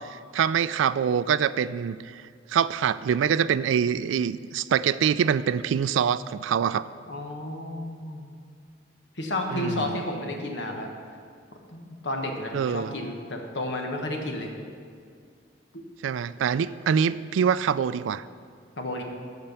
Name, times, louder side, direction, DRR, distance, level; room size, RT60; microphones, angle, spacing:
voice 1, 0.0-2.0 2.5-6.9 9.5-10.0 12.5-12.9 16.0-18.2, right 7 dB, 85° right, 16 dB, 0.3 m, -25 dB
voice 2, 7.1-8.3 9.2-10.9 11.7-14.5 15.7-15.8 18.8-19.0, left 1 dB, 70° left, 2 dB, 1.2 m, -32 dB
13.0 x 4.4 x 6.9 m, 2.2 s
head